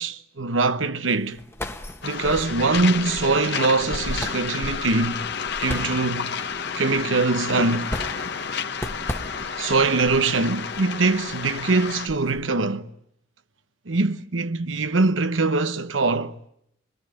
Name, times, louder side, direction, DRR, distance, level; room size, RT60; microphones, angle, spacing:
voice 1, 0.0-1.4 2.0-5.2 5.6-6.3 6.8-8.0 9.4-12.9 13.9-16.4, right 3 dB, 85° right, 1.0 m, -23 dB
sound 1, 1.1-12.4, left 1 dB, 15° left, 1.3 m, -37 dB
Waves surf, 2.0-12.1, left 6 dB, 60° left, 1.5 m, -31 dB
26.0 x 21.5 x 8.9 m
head